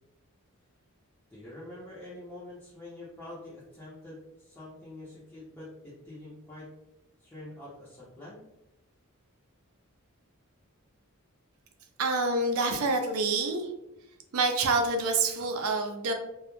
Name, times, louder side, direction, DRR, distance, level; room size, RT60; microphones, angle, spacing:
voice 1, 1.3-6.7 7.2-8.4, left 1 dB, 10° left, -10 dB, 0.5 m, -46 dB
voice 2, 12.0-13.7 14.3-16.1, right 3 dB, 70° right, 5 dB, 0.4 m, -27 dB
2.2 x 2.0 x 2.9 m, 0.92 s
head